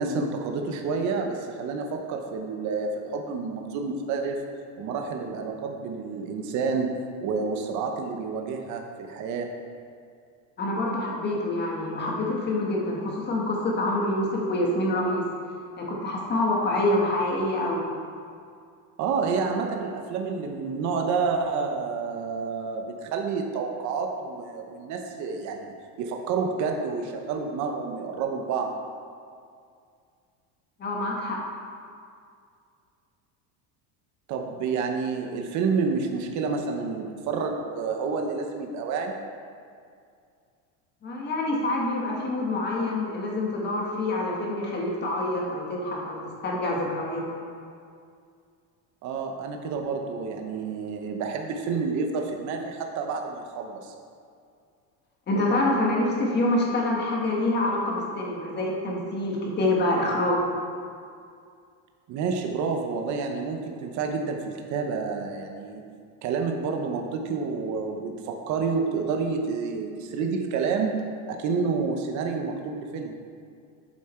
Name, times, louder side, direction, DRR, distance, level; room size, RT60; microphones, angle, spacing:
voice 1, 0.0-4.4 4.8-6.9 7.2-9.5 19.0-28.7 34.3-39.1 49.0-53.9 62.1-65.9 66.2-71.0 71.3-73.1, right 5 dB, 45° right, 3 dB, 0.9 m, -29 dB
voice 2, 10.6-15.2 15.8-17.8 30.8-31.4 41.0-47.2 55.3-60.4, left 1 dB, 25° left, -2 dB, 1.6 m, -26 dB
8.2 x 7.4 x 4.4 m, 2.3 s
cardioid pair, 160°, 42 cm